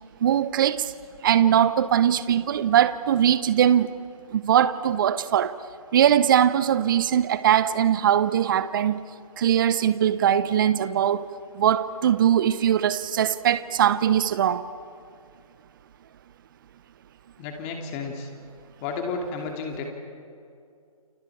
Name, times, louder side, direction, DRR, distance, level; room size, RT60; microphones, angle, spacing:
voice 1, 0.2-0.9 1.2-3.9 4.3-5.5 5.9-9.0 9.4-11.3 11.5-14.6, right 10 dB, 35° right, 0.8 m, -21 dB
voice 2, 17.4-18.3 18.8-19.9, left 4 dB, 20° left, 2.6 m, -32 dB
29.5 x 29.5 x 4.8 m
figure-of-eight pair, 145°, 19 cm